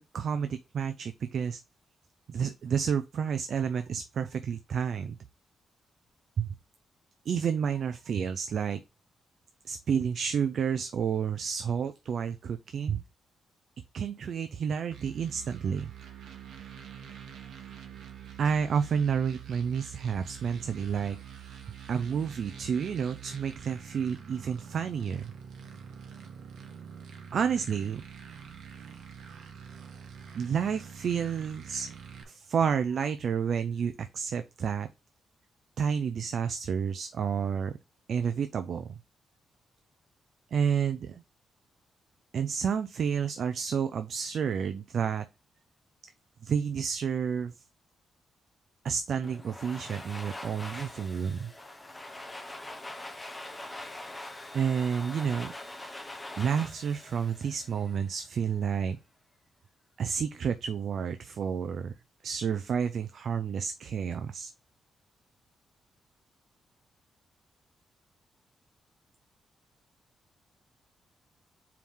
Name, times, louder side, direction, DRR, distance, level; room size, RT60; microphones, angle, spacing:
voice 1, 0.0-1.6 2.3-5.2 6.4-6.5 7.3-8.8 9.6-13.0 13.9-15.9 18.4-21.2 21.9-25.3 27.3-28.0 30.3-31.9 32.3-34.9 35.8-37.7 38.1-39.0 40.5-41.2 42.3-45.3 46.4-47.5 48.8-51.5 54.5-55.5 56.4-59.0 60.0-61.9 62.2-64.5, right 7 dB, 60° right, 0.5 m, -30 dB
Chunky Processed Reece Bass, 14.9-32.2, right 7 dB, 85° right, 1.1 m, -46 dB
Domestic sounds home sounds, 49.2-58.2, left 1 dB, 15° left, 0.8 m, -43 dB
4.7 x 3.6 x 5.5 m
cardioid pair, 135°, 0 cm